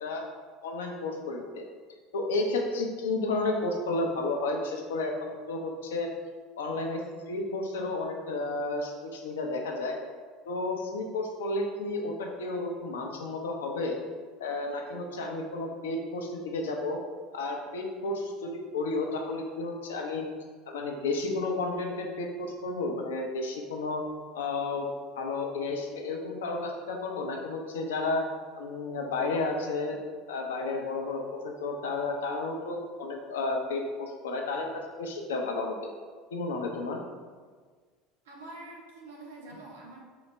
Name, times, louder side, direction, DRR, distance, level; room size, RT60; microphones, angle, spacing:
voice 1, 0.6-1.6 2.1-6.1 6.6-7.0 7.3-10.0 10.5-14.0 14.4-17.0 17.3-20.3 20.7-24.0 24.3-24.9 25.2-28.2 28.6-30.0 30.3-35.8 36.3-37.0, left 2 dB, 85° left, 2 dB, 0.5 m, -32 dB
voice 2, 38.2-40.0, right 2 dB, 90° right, -3 dB, 0.9 m, -45 dB
3.9 x 2.1 x 4.4 m, 1.5 s
hypercardioid pair, 85°, 0 cm